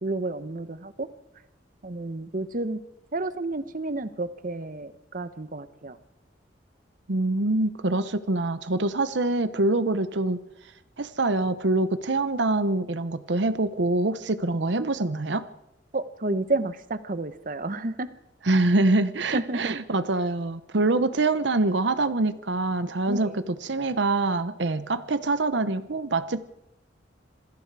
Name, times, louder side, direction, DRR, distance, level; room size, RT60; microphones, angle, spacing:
voice 1, 0.0-1.1 1.8-2.8 3.1-6.0 15.9-18.1 19.3-19.8 23.1-23.3, right 2 dB, 45° right, 12 dB, 1.0 m, -30 dB
voice 2, 7.1-10.4 11.0-15.5 18.4-26.4, right 2 dB, 70° right, 13 dB, 0.9 m, -25 dB
27.0 x 20.5 x 4.8 m, 0.90 s
head